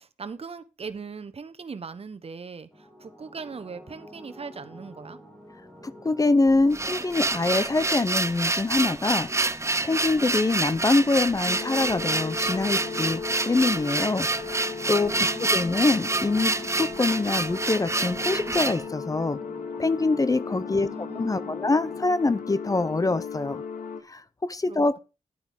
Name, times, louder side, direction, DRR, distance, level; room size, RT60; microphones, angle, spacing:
voice 1, 0.0-5.2 15.2-15.8 20.7-21.6 24.7-25.0, right 5 dB, 50° right, 1.1 m, -40 dB
sound 1, 2.7-22.1, equal, 5° left, 3.0 m, -47 dB
voice 2, 5.8-9.3 9.8-14.3 14.9-19.4 19.8-23.6 24.1-25.0, left 3 dB, 25° left, 0.6 m, -25 dB
sound 2, 6.5-18.8, right 2 dB, 20° right, 0.6 m, -27 dB
sound 3, 11.4-24.0, left 5 dB, 85° left, 1.2 m, -36 dB
11.0 x 9.0 x 3.6 m
cardioid pair, 60°, 13 cm